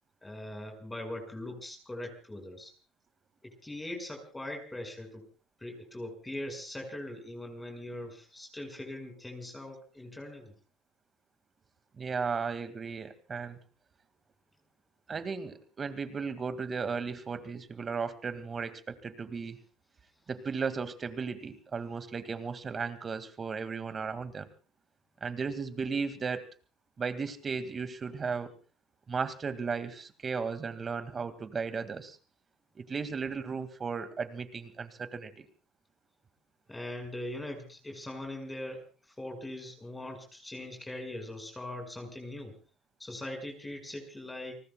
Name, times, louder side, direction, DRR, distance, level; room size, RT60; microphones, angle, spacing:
voice 1, 0.2-2.7 3.4-5.2 5.6-10.5 36.7-42.5 43.0-44.6, left 1 dB, 10° left, 3 dB, 6.0 m, -41 dB
voice 2, 12.0-13.6 15.1-19.6 20.3-24.5 25.2-26.5 27.0-28.5 29.1-32.2 32.8-35.5, right 5 dB, 30° right, 11 dB, 2.2 m, -35 dB
30.0 x 19.5 x 2.4 m, 0.37 s
supercardioid pair, 100°, 0 cm